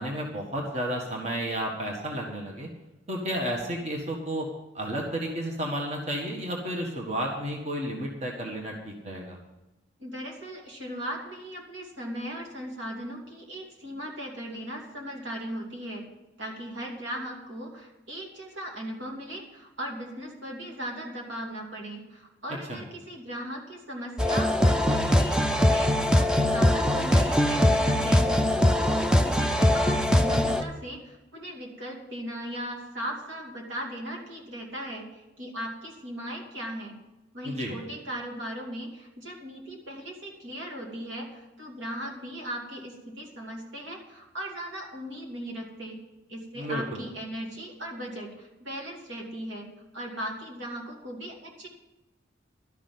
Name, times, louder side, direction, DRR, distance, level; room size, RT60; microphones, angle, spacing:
voice 1, 0.0-2.7 3.1-4.5 4.7-9.4 22.7-22.8 37.4-37.7 46.6-47.0, equal, 35° right, 0 dB, 1.6 m, -32 dB
voice 2, 10.0-16.0 16.4-36.9 37.3-46.0 46.3-49.7 49.9-51.7, equal, 80° right, 0 dB, 2.7 m, -38 dB
sound 1, 24.2-30.6, left 1 dB, 5° right, 0.5 m, -22 dB
12.5 x 6.2 x 9.3 m, 1.0 s
head